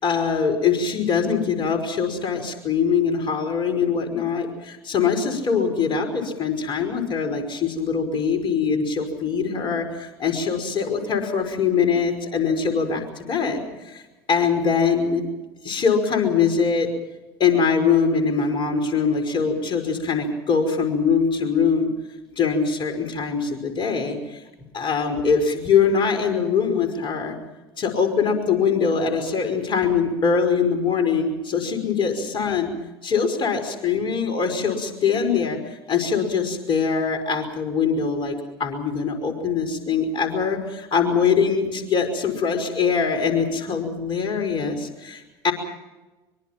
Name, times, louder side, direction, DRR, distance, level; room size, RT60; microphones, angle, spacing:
voice 1, 0.0-14.0 14.3-15.2 15.6-16.9 17.4-21.9 22.3-24.4 24.7-27.4 27.8-32.7 33.0-35.6 35.9-45.5, left 6 dB, 40° left, 5 dB, 5.3 m, -22 dB
24.0 x 23.5 x 5.9 m, 1.1 s
figure-of-eight pair, 70°, 13 cm